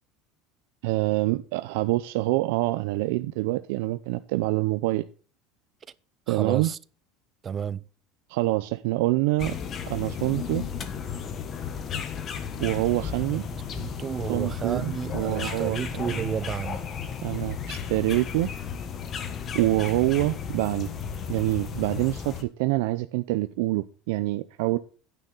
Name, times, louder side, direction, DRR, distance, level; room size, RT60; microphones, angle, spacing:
voice 1, 0.8-5.0 6.3-6.7 8.3-9.5 9.9-10.6 12.6-13.4 14.3-16.3 17.2-18.5 19.5-20.9 21.3-24.8, right 19 dB, 80° right, 0.5 m, -26 dB
voice 2, 6.3-6.8 7.4-7.8 13.3-13.4 13.7-16.8, right 7 dB, 25° right, 0.4 m, -31 dB
sound 1, 9.4-22.4, left 7 dB, 30° left, 1.2 m, -34 dB
9.4 x 9.2 x 4.0 m
cardioid pair, 155°, 0 cm